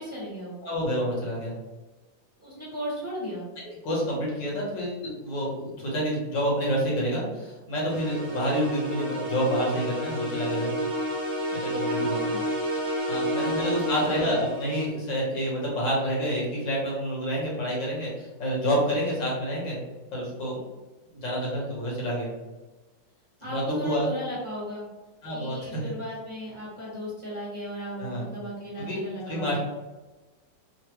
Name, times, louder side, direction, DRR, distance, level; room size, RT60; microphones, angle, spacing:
voice 1, 0.0-0.6 2.4-3.4 12.3-12.4 13.4-14.4 23.4-24.9 25.3-29.6, equal, 20° right, -9 dB, 0.9 m, -36 dB
voice 2, 0.6-1.5 3.8-10.8 11.5-12.4 13.1-19.8 20.1-20.6 21.1-22.3 23.5-24.1 25.2-25.6 28.0-28.3 28.8-29.0 29.3-29.6, equal, 80° left, -5 dB, 1.8 m, -28 dB
sound 1, 7.9-14.9, equal, 55° right, 0.3 m, -30 dB
3.8 x 2.0 x 3.0 m, 1.2 s
omnidirectional pair, 2.0 m